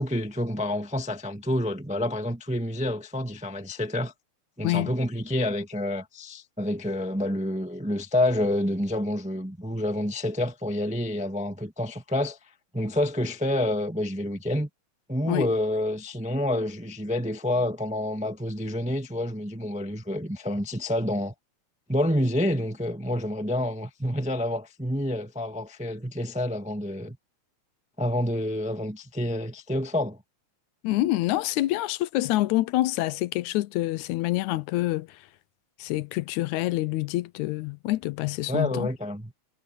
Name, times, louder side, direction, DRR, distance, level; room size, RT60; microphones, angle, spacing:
voice 1, 0.0-4.1 4.6-12.4 12.7-14.7 15.1-21.3 21.9-27.2 28.0-30.2 38.5-39.3, left 1 dB, 5° right, 0.5 m, -28 dB
voice 2, 30.8-35.2 35.8-38.9, left 17 dB, 90° left, 2.0 m, -26 dB
omnidirectional pair, 3.4 m